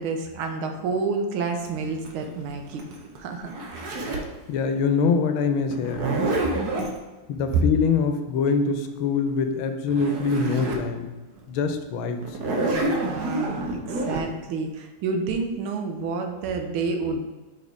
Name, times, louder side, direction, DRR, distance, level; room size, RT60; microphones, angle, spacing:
voice 1, 0.0-2.8 3.2-3.5 6.5-6.7 12.7-17.2, right 4 dB, 85° right, 4 dB, 1.6 m, -29 dB
Zipper (clothing), 1.7-4.4 5.7-7.0 9.6-9.7 9.9-10.9 11.4-11.5 12.2-14.2, right 2 dB, 60° right, 1.3 m, -28 dB
voice 2, 4.5-6.1 7.3-11.1 11.5-12.2, left 5 dB, 90° left, 6 dB, 1.5 m, -24 dB
5.5 x 4.2 x 4.6 m, 1.2 s
omnidirectional pair, 2.2 m